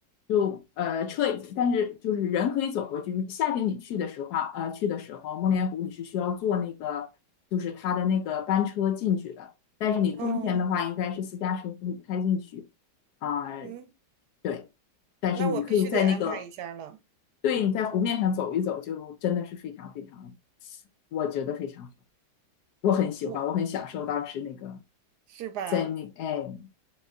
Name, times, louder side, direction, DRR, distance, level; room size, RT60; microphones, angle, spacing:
voice 1, 0.3-7.1 7.5-9.5 9.8-12.6 13.2-13.7 14.4-14.6 15.2-16.4 17.4-20.4 21.1-21.9 22.8-24.8 25.7-26.7, left 8 dB, 70° left, 1.1 m, -28 dB
voice 2, 10.2-10.7 13.6-13.9 15.4-17.0 23.2-23.4 25.3-25.9, right 8 dB, 70° right, 1.1 m, -36 dB
4.1 x 3.6 x 2.3 m
omnidirectional pair, 1.9 m